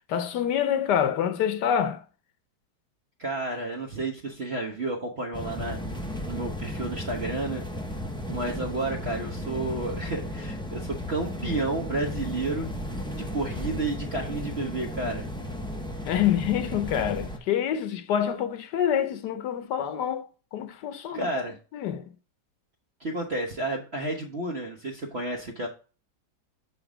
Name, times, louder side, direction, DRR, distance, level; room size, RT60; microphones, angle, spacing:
voice 1, 0.1-2.0 16.0-20.3 20.5-21.3 21.7-22.1, left 9 dB, 70° left, 1.4 m, -26 dB
voice 2, 3.2-5.8 6.2-7.6 8.3-12.7 13.1-15.3 21.1-21.5 23.0-25.7, right 2 dB, 40° right, 1.2 m, -31 dB
sound 1, 5.3-17.4, left 1 dB, 5° left, 0.5 m, -35 dB
8.1 x 3.9 x 4.9 m
omnidirectional pair, 1.9 m